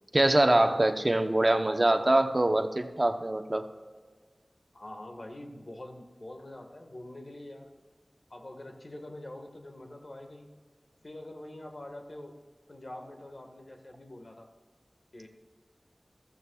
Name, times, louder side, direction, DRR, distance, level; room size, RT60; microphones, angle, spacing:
voice 1, 0.1-3.6, right 1 dB, 40° right, 7 dB, 0.9 m, -24 dB
voice 2, 4.7-7.7 8.3-10.5 11.0-12.4 12.7-14.5 15.1-15.3, left 1 dB, 60° left, 3 dB, 1.6 m, -45 dB
15.0 x 14.0 x 2.4 m, 1.4 s
wide cardioid pair, 40°, 0 cm